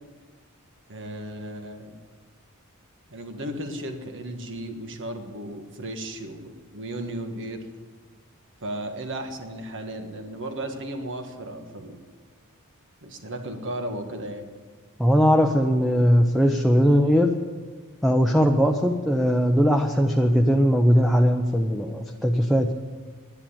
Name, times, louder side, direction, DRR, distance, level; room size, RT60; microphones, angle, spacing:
voice 1, 0.9-2.0 3.1-7.6 8.6-12.0 13.0-14.5, right 1 dB, 60° right, 6 dB, 1.5 m, -35 dB
voice 2, 15.0-17.3 18.0-22.7, equal, ahead, 3 dB, 0.6 m, -20 dB
11.0 x 10.5 x 8.6 m, 1.4 s
head